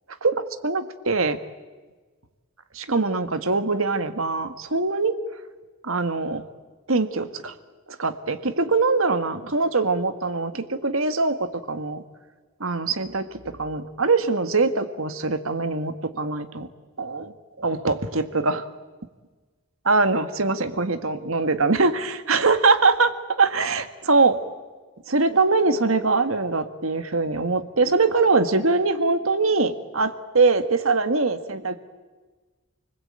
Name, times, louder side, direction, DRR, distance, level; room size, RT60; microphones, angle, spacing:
voice 1, 0.2-1.4 2.7-5.2 5.8-6.4 6.9-7.5 8.0-12.0 12.6-16.7 17.0-18.7 19.9-24.4 25.1-31.8, right 3 dB, 75° right, 10 dB, 1.8 m, -23 dB
29.0 x 20.5 x 8.9 m, 1.3 s
head